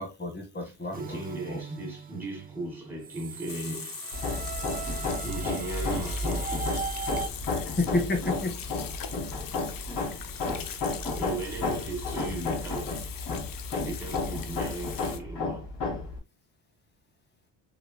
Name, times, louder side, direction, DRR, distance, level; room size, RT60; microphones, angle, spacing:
voice 1, 0.0-1.2 1.5-1.6 7.6-8.6, left 2 dB, 20° left, 1.8 m, -30 dB
voice 2, 0.6-4.0 5.2-6.9 11.1-13.0 13.9-15.7, right 2 dB, 5° right, 2.1 m, -37 dB
sound 1, 0.9-7.3, right 6 dB, 20° right, 0.4 m, -39 dB
Water tap faucet / Sink (filling or washing), 3.5-15.2, left 8 dB, 45° left, 0.8 m, -41 dB
Hammer, 4.1-16.2, left 3 dB, 60° left, 2.5 m, -32 dB
4.9 x 3.2 x 2.2 m
supercardioid pair, 60°, 47 cm